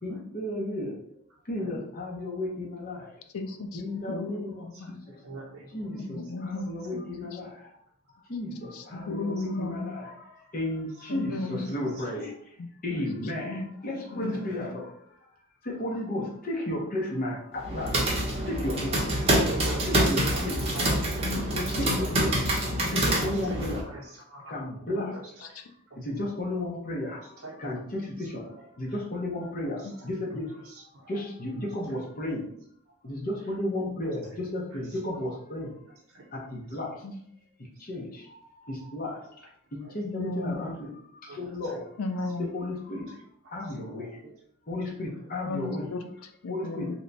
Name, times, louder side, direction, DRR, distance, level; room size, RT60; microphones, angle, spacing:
voice 1, 0.0-0.9 1.4-3.1 3.7-5.1 5.7-7.7 8.2-12.5 12.8-15.2 15.6-18.0 18.4-19.3 19.9-20.6 21.8-22.3 22.6-25.1 26.0-32.5 33.0-35.8 36.3-37.0 37.8-39.5 39.9-42.0 42.4-43.2 43.5-44.2 44.7-45.9 46.5-46.9, left 1 dB, 40° left, -3 dB, 0.7 m, -34 dB
voice 2, 3.3-5.0 6.0-7.0 7.3-7.4 8.7-9.9 11.1-11.7 12.6-13.0 13.4-14.7 21.3-22.0 22.4-23.1 24.9-25.1 25.5-25.6 29.8-29.9 37.0-37.2 40.0-40.7 42.0-42.5 45.5-46.9, left 2 dB, 75° left, 7 dB, 0.4 m, -35 dB
voice 3, 5.2-5.7 12.0-12.1 18.9-19.1 19.4-20.1 20.7-21.7 22.0-22.3 23.2-24.0 24.3-24.5 25.9-26.0 27.4-27.6 36.1-36.2 39.8-39.9 41.3-41.4 41.7-41.8 44.0-44.3, right 2 dB, 70° right, -5 dB, 0.7 m, -42 dB
sound 1, 17.6-23.8, right 1 dB, 25° right, 0.7 m, -26 dB
2.9 x 2.2 x 3.9 m, 0.67 s
head